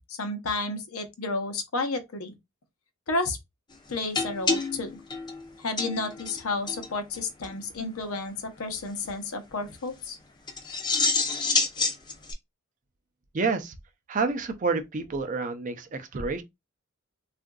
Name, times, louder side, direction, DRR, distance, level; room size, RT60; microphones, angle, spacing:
voice 1, 0.1-2.3 3.1-3.4 3.9-5.0 5.6-10.2, left 3 dB, 80° left, 0.7 m, -31 dB
sound 1, 4.1-6.4 6.7-6.9 7.1-7.2 7.4-7.5 10.5-12.3, left 4 dB, 20° left, 0.5 m, -27 dB
voice 2, 13.3-13.7 14.1-16.4, right 4 dB, 35° right, 0.4 m, -28 dB
3.7 x 2.4 x 2.2 m
head